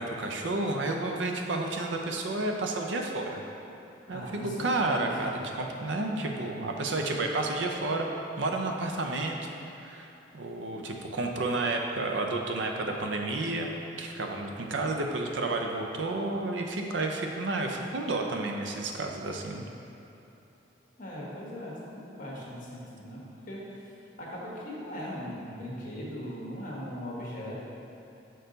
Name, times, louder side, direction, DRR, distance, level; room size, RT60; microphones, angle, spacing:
voice 1, 0.0-3.4 4.1-9.5 9.8-10.1 10.3-19.7, right 2 dB, 75° right, 2 dB, 0.6 m, -31 dB
voice 2, 4.1-5.5 21.0-23.6 23.9-27.6, equal, 45° left, -5 dB, 1.3 m, -39 dB
6.3 x 4.4 x 3.9 m, 2.9 s
head